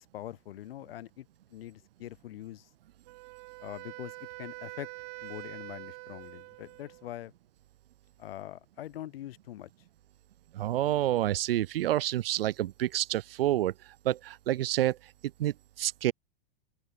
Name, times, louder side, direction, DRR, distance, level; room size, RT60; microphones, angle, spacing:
voice 1, 0.0-2.7 3.6-4.9 5.2-7.3 8.2-9.7, left 13 dB, 70° left, 6.2 m, -43 dB
Wind instrument woodwind instrument, 3.1-7.1, right 40 dB or more, 40° right, 5.2 m, -45 dB
voice 2, 10.5-13.7 14.0-15.0 15.4-16.1, right 13 dB, 65° right, 5.8 m, -28 dB
open air
supercardioid pair, 150°, 30 cm